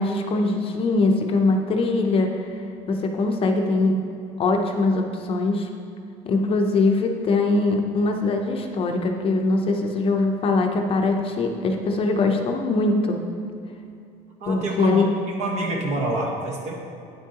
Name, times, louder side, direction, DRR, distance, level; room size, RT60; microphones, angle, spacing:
voice 1, 0.0-2.3 2.9-4.0 4.4-5.7 6.2-13.2 14.5-15.1, left 3 dB, 40° left, 3 dB, 0.6 m, -22 dB
voice 2, 14.4-16.7, right 1 dB, 50° right, 0 dB, 1.3 m, -27 dB
9.2 x 8.2 x 2.9 m, 2.6 s
cardioid pair, 150°, 15 cm